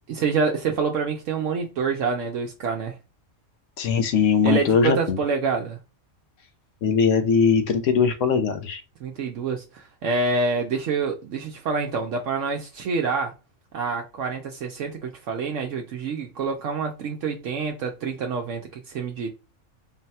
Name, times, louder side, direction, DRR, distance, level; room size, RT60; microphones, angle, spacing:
voice 1, 0.1-3.0 4.4-5.8 9.0-13.3 13.7-19.3, right 4 dB, 70° right, 0.9 m, -27 dB
voice 2, 3.8-5.2 6.8-8.8, left 6 dB, 70° left, 1.0 m, -20 dB
3.9 x 2.2 x 4.1 m
omnidirectional pair, 1.4 m